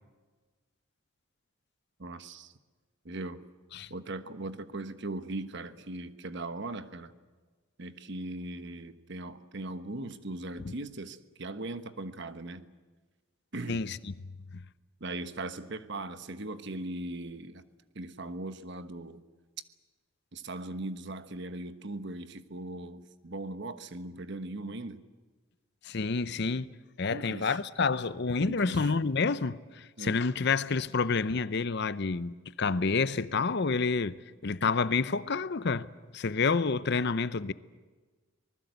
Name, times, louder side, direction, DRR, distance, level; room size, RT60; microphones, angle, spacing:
voice 1, 2.0-2.5 3.0-3.4 3.9-7.1 7.8-12.7 13.5-13.8 15.0-17.6 17.9-19.2 20.3-25.0 27.1-27.6 28.4-28.9 30.0-30.2, right 2 dB, 55° right, 1.2 m, -39 dB
voice 2, 25.8-35.9 36.1-37.5, left 4 dB, 50° left, 0.6 m, -29 dB
25.0 x 20.0 x 8.1 m
head